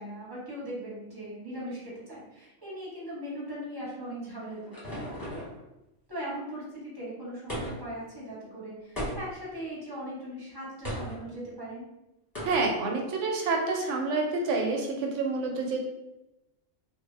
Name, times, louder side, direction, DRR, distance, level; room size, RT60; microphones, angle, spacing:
voice 1, 0.0-5.5 6.1-11.8, equal, 20° right, -7 dB, 0.8 m, -39 dB
sound 1, 4.1-5.6 7.5-8.0 9.0-9.5 10.8-11.2 12.4-12.8, equal, 20° left, 0.6 m, -36 dB
voice 2, 12.4-15.8, right 3 dB, 85° right, 1 dB, 0.9 m, -28 dB
2.1 x 2.0 x 3.2 m, 0.95 s
omnidirectional pair, 1.2 m